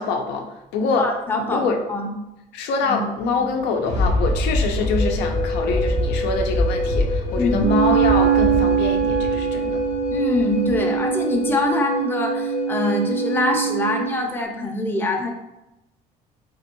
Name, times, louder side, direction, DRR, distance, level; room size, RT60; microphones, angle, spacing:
voice 1, 0.0-1.1 1.5-1.8 2.5-9.8, left 4 dB, 85° left, 3 dB, 0.5 m, -25 dB
voice 2, 1.0-2.1 2.8-3.0 7.4-7.7 10.1-15.3, left 2 dB, 10° left, 1 dB, 0.5 m, -24 dB
Thunder, 3.5-11.0 11.5-11.6, left 1 dB, 75° right, 1.1 m, -25 dB
Wind instrument woodwind instrument, 4.8-14.0, left 2 dB, 50° left, 0.7 m, -28 dB
Wind instrument woodwind instrument 2, 7.6-14.3, right 10 dB, 55° right, 0.4 m, -23 dB
3.4 x 2.2 x 2.9 m, 0.92 s
cardioid pair, 110°, 17 cm